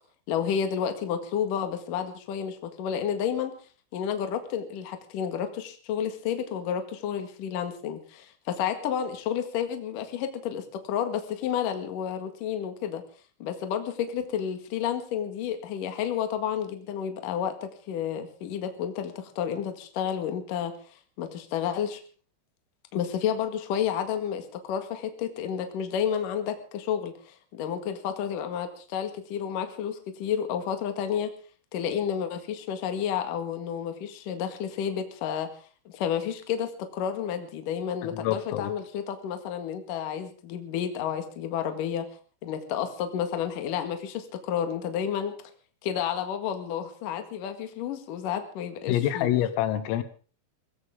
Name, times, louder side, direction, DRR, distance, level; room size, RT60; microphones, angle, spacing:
voice 1, 0.3-3.5 3.9-13.0 13.4-22.0 22.9-31.3 31.7-35.5 35.9-42.1 42.4-45.3 45.8-49.3, left 8 dB, 55° left, 7 dB, 2.7 m, -31 dB
voice 2, 38.0-38.7 48.9-50.0, left 12 dB, 85° left, 12 dB, 3.9 m, -26 dB
22.5 x 16.0 x 3.7 m, 0.39 s
omnidirectional pair, 5.9 m